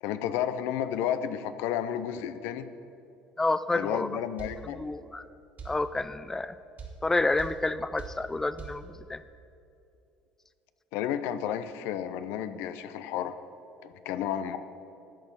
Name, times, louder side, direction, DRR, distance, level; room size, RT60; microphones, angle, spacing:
voice 1, 0.0-2.7 3.7-4.8 10.9-13.4 13.8-14.6, left 10 dB, 70° left, 12 dB, 0.5 m, -32 dB
voice 2, 3.4-4.1 4.8-5.2 5.7-6.6 7.0-9.2, left 2 dB, 10° left, 14 dB, 0.3 m, -29 dB
sound 1, 4.4-4.6 5.6-5.8 6.8-7.0 7.4-7.6 8.0-8.2 8.6-8.8, right 6 dB, 40° right, 2.0 m, -41 dB
11.5 x 4.4 x 7.2 m, 2.6 s
hypercardioid pair, 70°, 4 cm